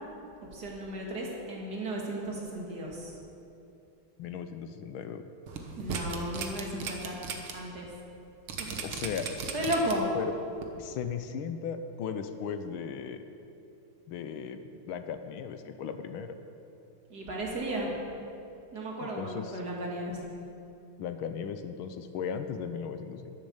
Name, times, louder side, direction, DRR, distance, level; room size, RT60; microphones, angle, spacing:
voice 1, 0.5-3.1 5.8-7.2 7.5-7.9 8.5-8.8 9.5-10.1 17.1-17.9 18.7-20.2, right 1 dB, 50° right, -2 dB, 2.6 m, -34 dB
voice 2, 4.2-5.2 8.8-9.3 10.1-10.4 10.8-13.2 14.1-16.3 19.0-19.6 21.0-23.4, left 7 dB, 75° left, 9 dB, 1.5 m, -37 dB
sound 1, 5.5-7.5 7.9-8.0 8.5-10.1 10.6-10.7, right 6 dB, 80° right, 2.0 m, -36 dB
12.0 x 10.5 x 7.1 m, 2.7 s
omnidirectional pair, 2.4 m